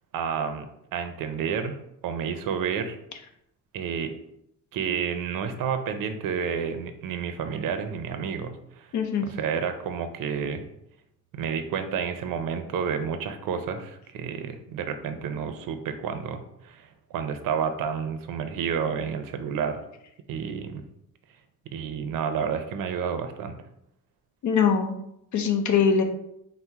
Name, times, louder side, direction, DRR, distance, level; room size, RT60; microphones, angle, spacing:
voice 1, 0.1-1.8 2.0-3.0 3.7-4.1 4.7-8.9 9.2-10.6 11.3-19.8 20.3-20.8 21.7-23.6, right 7 dB, 85° right, 8 dB, 0.6 m, -30 dB
voice 2, 8.9-9.3 24.4-24.9 25.3-26.0, left 6 dB, 65° left, 6 dB, 0.6 m, -22 dB
4.2 x 2.0 x 4.5 m, 0.78 s
cardioid pair, 140°, 32 cm